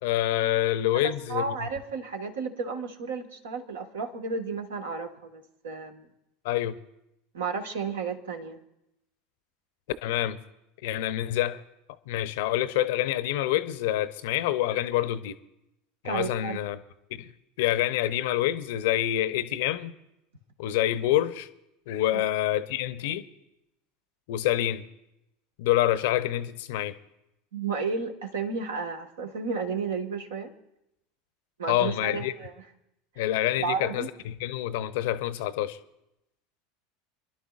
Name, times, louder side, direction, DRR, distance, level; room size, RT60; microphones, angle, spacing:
voice 1, 0.0-1.4 6.4-6.8 10.0-10.4 10.8-11.6 12.1-15.4 16.0-16.8 17.1-17.3 17.6-19.9 20.6-21.5 21.9-23.2 24.3-24.8 25.6-26.9 31.7-32.3 33.2-35.8, left 13 dB, 60° left, 0.7 m, -27 dB
voice 2, 0.9-6.1 7.3-8.6 16.0-16.6 22.1-22.3 27.5-30.5 31.6-32.5 33.6-34.1, right 4 dB, 70° right, 1.5 m, -32 dB
28.0 x 11.5 x 2.4 m
figure-of-eight pair, 75°, 0 cm